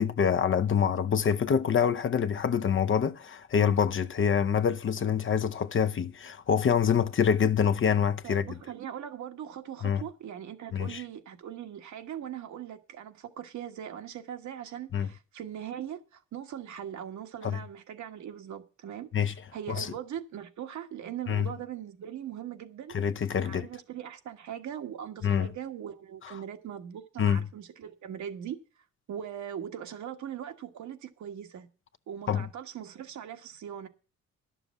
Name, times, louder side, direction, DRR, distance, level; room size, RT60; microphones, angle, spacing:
voice 1, 0.0-8.4 9.8-10.0 10.7-11.0 14.9-15.1 17.4-17.6 19.1-19.3 19.8-19.9 21.3-21.5 22.9-23.7 25.2-25.5 27.2-27.4 32.3-32.5, left 7 dB, 40° left, 0.8 m, -26 dB
voice 2, 8.2-19.1 19.5-22.9 23.4-31.7 32.1-33.9, right 9 dB, 70° right, 1.4 m, -40 dB
11.0 x 7.0 x 7.1 m
cardioid pair, 90°, 30 cm